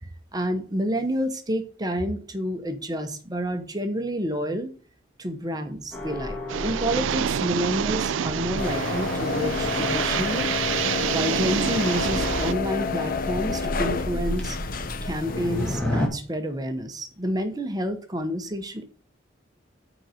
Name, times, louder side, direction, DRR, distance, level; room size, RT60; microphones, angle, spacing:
voice 1, 0.0-4.7 5.2-10.5 11.1-14.6 15.0-18.8, equal, 20° right, 7 dB, 0.9 m, -29 dB
sound 1, 5.9-16.1, left 1 dB, 5° left, 2.1 m, -33 dB
sound 2, 6.5-12.5, right 9 dB, 90° right, 0.4 m, -28 dB
sound 3, 8.6-15.8, left 4 dB, 50° left, 0.8 m, -29 dB
9.3 x 4.0 x 6.4 m, 0.41 s
head